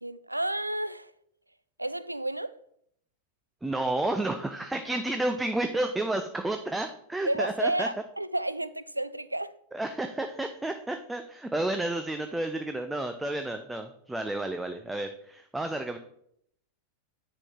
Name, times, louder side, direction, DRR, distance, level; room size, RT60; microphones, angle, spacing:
voice 1, 0.0-1.1 1.8-2.5 7.2-9.5, right 1 dB, 85° right, 0.3 m, -31 dB
voice 2, 3.6-7.9 9.7-16.0, right 2 dB, 5° right, 0.5 m, -31 dB
9.6 x 4.4 x 3.6 m
figure-of-eight pair, 90°, 0 cm